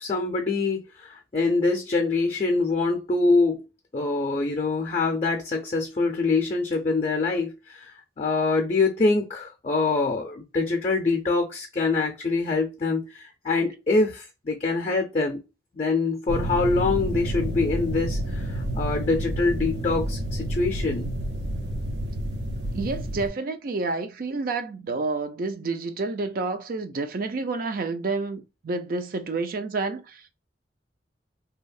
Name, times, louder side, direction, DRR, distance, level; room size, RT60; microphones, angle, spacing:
voice 1, 0.0-3.7 3.9-15.4 15.7-21.1, left 3 dB, 35° left, 0.5 m, -25 dB
sound 1, 16.3-23.3, right 1 dB, 80° right, 0.8 m, -29 dB
voice 2, 22.7-30.4, right 3 dB, 55° right, 0.4 m, -29 dB
2.8 x 2.0 x 2.4 m
head